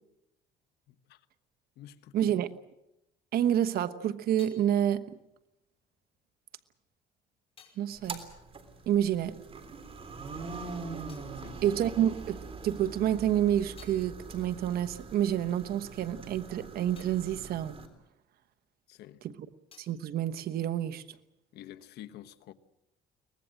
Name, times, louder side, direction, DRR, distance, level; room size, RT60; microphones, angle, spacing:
voice 1, 0.9-1.2 1.8-2.2 11.4-11.6 18.9-19.2 21.5-22.5, left 12 dB, 75° left, 1.2 m, -49 dB
voice 2, 2.1-2.5 3.3-5.2 7.8-8.2 8.9-9.4 11.6-17.8 19.2-19.3 19.8-21.0, right 10 dB, 65° right, 1.2 m, -28 dB
sound 1, 3.7-9.6 9.8-12.5 12.9-19.0 19.2-21.2, left 7 dB, 35° left, 5.6 m, -63 dB
sound 2, 7.9-17.9, right 4 dB, 35° right, 3.5 m, -43 dB
23.5 x 19.5 x 7.7 m
cardioid pair, 110°, 17 cm